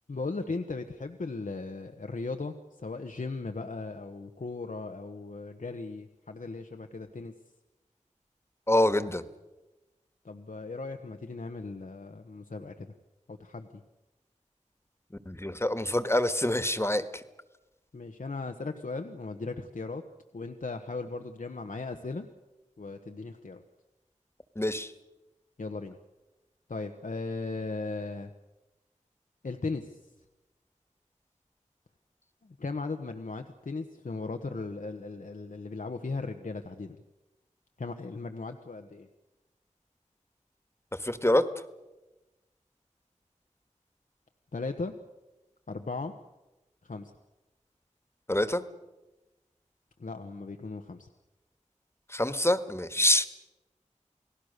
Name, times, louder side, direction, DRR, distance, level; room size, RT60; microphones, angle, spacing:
voice 1, 0.1-2.5 2.8-7.3 10.2-12.9 13.3-13.8 17.9-20.0 20.3-22.3 22.8-23.6 25.6-26.0 26.7-28.3 29.4-30.0 32.6-37.0 37.8-39.1 44.5-44.9 45.7-46.1 46.8-47.1 50.0-51.1, left 3 dB, 85° left, 6 dB, 1.2 m, -37 dB
voice 2, 8.7-9.2 15.2-17.0 24.5-24.9 41.0-41.5 48.3-48.6 52.1-53.3, left 1 dB, 20° left, 11 dB, 1.6 m, -26 dB
29.5 x 18.5 x 6.7 m, 1.1 s
wide cardioid pair, 45°, 13 cm